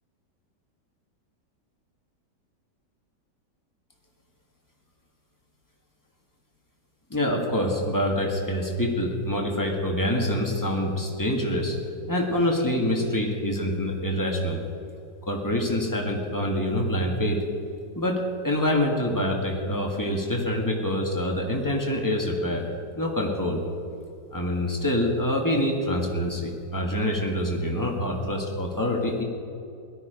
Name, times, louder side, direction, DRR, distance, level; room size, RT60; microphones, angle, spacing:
voice 1, 7.1-11.8 12.1-14.6 15.3-17.4 18.0-22.6 23.0-23.6 24.3-29.2, left 1 dB, 10° left, 0 dB, 1.8 m, -26 dB
17.0 x 12.5 x 5.2 m, 2.7 s
omnidirectional pair, 1.9 m